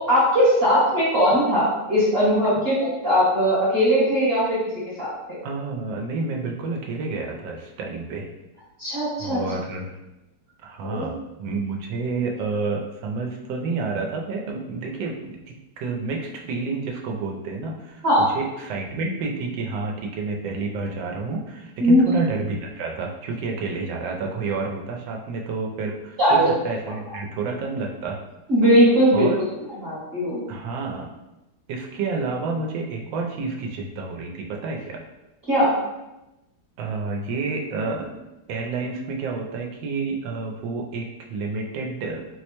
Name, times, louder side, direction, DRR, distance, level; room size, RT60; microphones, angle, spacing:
voice 1, 0.1-4.6 5.0-5.1 8.8-9.4 10.8-11.1 18.0-18.3 21.8-22.0 26.2-26.5 28.5-29.3 29.7-30.4 35.5-35.7, equal, 40° right, -9 dB, 1.0 m, -19 dB
voice 2, 5.4-8.3 9.2-9.9 10.6-18.0 18.3-28.2 29.1-29.4 30.5-31.1 31.7-35.0 36.8-38.2 38.5-42.3, right 4 dB, 85° right, 1 dB, 1.3 m, -29 dB
4.1 x 2.1 x 2.9 m, 0.98 s
omnidirectional pair, 2.0 m